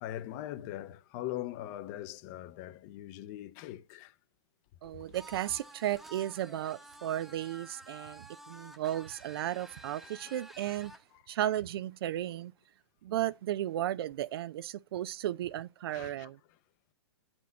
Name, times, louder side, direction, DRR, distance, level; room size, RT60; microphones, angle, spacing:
voice 1, 0.0-4.1 10.2-10.4 15.9-16.3, left 13 dB, 40° left, 0.6 m, -41 dB
voice 2, 4.8-10.9 11.3-12.5 13.0-16.4, right 12 dB, 60° right, 0.4 m, -34 dB
sound 1, 5.1-11.0, right 1 dB, ahead, 0.9 m, -51 dB
8.1 x 4.4 x 3.9 m
hypercardioid pair, 125°, 14 cm